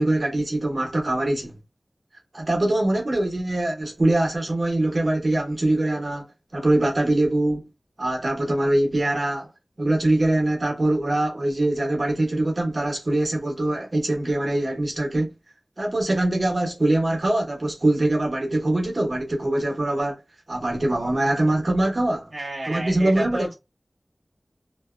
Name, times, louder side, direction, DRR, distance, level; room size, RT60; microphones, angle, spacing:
voice 1, 0.0-1.6 2.3-6.2 6.5-7.7 8.0-9.5 9.8-15.3 15.8-20.1 20.5-22.3 22.7-23.5, right 1 dB, 60° right, 1.0 m, -23 dB
voice 2, 22.3-23.5, right 1 dB, 80° right, 0.9 m, -31 dB
2.7 x 2.2 x 2.3 m
wide cardioid pair, 40°, 0 cm